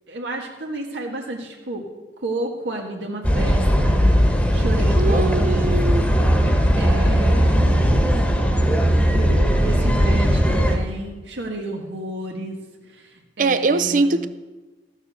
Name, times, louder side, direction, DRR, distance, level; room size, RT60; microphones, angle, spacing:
voice 1, 0.1-1.8 2.2-4.1 4.5-5.8 6.8-7.9 9.1-12.6 12.9-13.1 13.4-14.3, right 1 dB, 85° right, 1.7 m, -31 dB
sound 1, 3.2-10.8, equal, 5° left, 1.2 m, -18 dB
voice 2, 5.0-6.1 13.4-14.3, right 3 dB, 50° right, 0.6 m, -21 dB
13.5 x 7.2 x 6.8 m
head